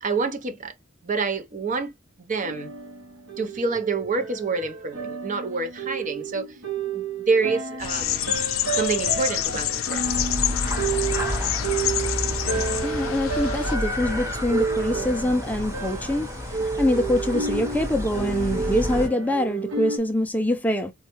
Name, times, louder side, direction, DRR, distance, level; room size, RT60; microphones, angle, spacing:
voice 1, 0.0-0.7 1.0-1.9 2.2-2.7 3.4-6.6 6.9-8.3 8.7-10.0, right 4 dB, 40° right, 0.6 m, -27 dB
sound 1, 2.4-20.0, right 5 dB, 70° right, 1.0 m, -31 dB
sound 2, 7.8-13.8, left 12 dB, 75° left, 0.5 m, -28 dB
sound 3, 10.0-19.1, left 1 dB, 15° right, 0.9 m, -31 dB
voice 2, 12.8-20.9, left 1 dB, 10° left, 0.4 m, -25 dB
4.2 x 2.3 x 2.9 m
head